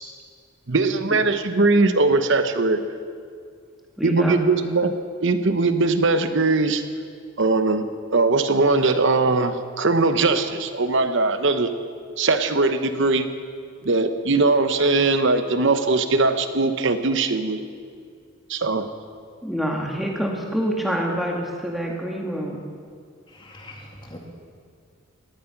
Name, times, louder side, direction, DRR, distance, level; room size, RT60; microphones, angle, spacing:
voice 1, 0.7-2.8 4.0-4.9 5.2-6.8 7.4-7.9 8.1-11.7 12.2-13.3 13.8-17.6 18.5-18.8, right 3 dB, 55° right, 9 dB, 0.9 m, -20 dB
voice 2, 4.0-4.4 19.4-22.6, equal, ahead, -1 dB, 1.9 m, -26 dB
voice 3, 23.3-24.2, left 1 dB, 20° left, 0 dB, 2.2 m, -42 dB
18.0 x 13.0 x 5.9 m, 2.2 s
head